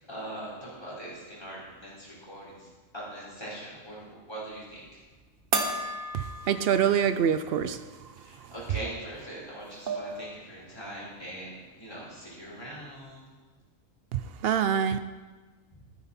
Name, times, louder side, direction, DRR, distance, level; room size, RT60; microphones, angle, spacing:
voice 1, 0.1-2.7 2.9-4.8 8.3-13.3, right 1 dB, 20° left, -7 dB, 4.1 m, -41 dB
sound 1, 5.5-7.1 7.5-7.6 9.2-9.3 9.6-10.2, right 3 dB, 45° right, 1.2 m, -33 dB
voice 2, 6.1-7.8 14.1-15.0, right 8 dB, 65° right, 11 dB, 0.6 m, -25 dB
13.5 x 9.6 x 4.2 m, 1.3 s
omnidirectional pair, 1.4 m